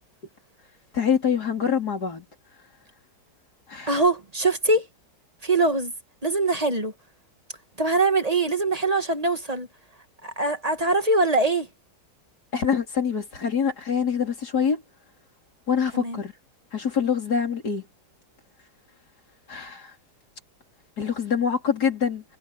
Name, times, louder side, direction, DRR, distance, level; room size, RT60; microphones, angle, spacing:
voice 1, 0.9-2.2 3.7-3.9 12.5-14.8 15.7-16.3 16.7-17.8 19.5-19.8 21.0-22.2, left 7 dB, 55° left, 4.5 m, -25 dB
voice 2, 3.9-4.9 5.4-5.9 6.2-6.9 7.8-9.7 10.2-11.7 15.9-16.2, right 2 dB, 20° right, 1.7 m, -23 dB
omnidirectional pair, 2.0 m